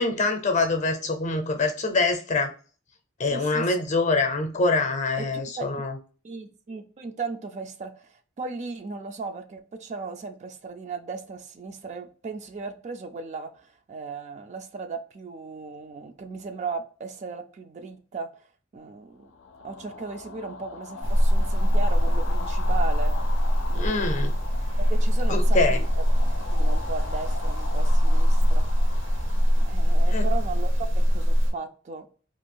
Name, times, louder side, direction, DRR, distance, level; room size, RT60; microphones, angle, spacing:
voice 1, 0.0-2.5 3.2-6.0 23.7-24.3 25.3-25.8 30.1-30.3, left 3 dB, 40° left, 0.6 m, -25 dB
voice 2, 3.3-3.7 5.2-5.8 6.2-18.5 18.7-19.3 19.6-23.1 23.7-24.3 24.8-25.8 26.5-28.6 29.6-30.7 30.9-32.1, right 4 dB, 35° right, 0.3 m, -36 dB
sound 1, 19.2-30.4, left 4 dB, 85° left, 0.4 m, -41 dB
sound 2, 21.0-31.5, equal, 70° right, 0.8 m, -22 dB
2.5 x 2.3 x 3.6 m
head